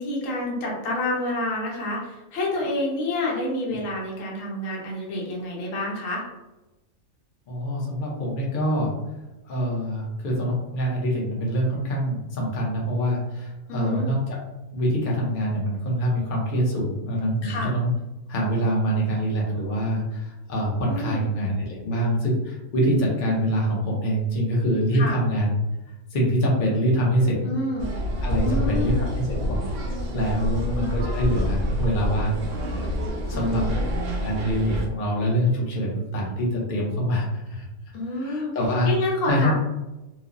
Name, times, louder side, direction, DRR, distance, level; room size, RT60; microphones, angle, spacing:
voice 1, 0.0-6.2 13.7-14.1 17.4-17.7 20.9-21.2 24.9-25.1 27.4-27.9 28.3-29.0 30.3-31.0 33.3-33.8 37.9-38.5 38.8-39.5, left 1 dB, 70° left, -3 dB, 1.1 m, -28 dB
voice 2, 7.5-9.0 9.4-14.4 14.7-17.9 18.3-25.6 25.8-27.4 28.2-32.4 32.7-32.9 33.3-33.7 34.2-37.7 38.1-38.9 39.3-39.5, equal, 50° left, -3 dB, 0.7 m, -25 dB
sound 1, 27.8-34.9, equal, 65° right, 0.6 m, -27 dB
3.0 x 2.0 x 2.4 m, 1.0 s
omnidirectional pair, 1.4 m